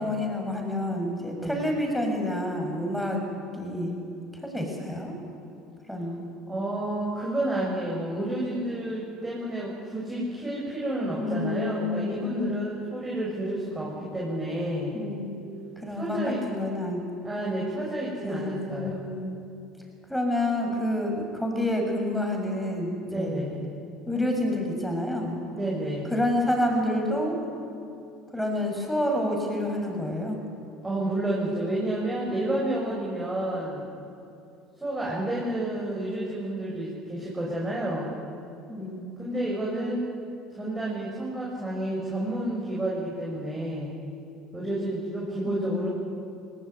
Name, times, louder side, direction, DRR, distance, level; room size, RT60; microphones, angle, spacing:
voice 1, 0.0-3.2 3.5-4.0 4.4-5.1 5.9-6.3 11.1-12.6 14.9-15.3 15.8-17.0 18.2-19.4 20.1-23.4 24.1-25.4 26.1-27.4 28.3-30.4 38.7-39.1 45.4-45.9, left 1 dB, 5° left, 2 dB, 6.7 m, -28 dB
voice 2, 6.5-15.0 15.9-16.4 17.2-19.0 23.0-23.7 25.5-26.1 30.8-34.0 34.8-38.1 39.2-40.0 40.5-43.9 44.5-45.9, right 1 dB, 20° right, -4 dB, 6.8 m, -30 dB
20.0 x 19.0 x 9.5 m, 2.7 s
hypercardioid pair, 75°, 0 cm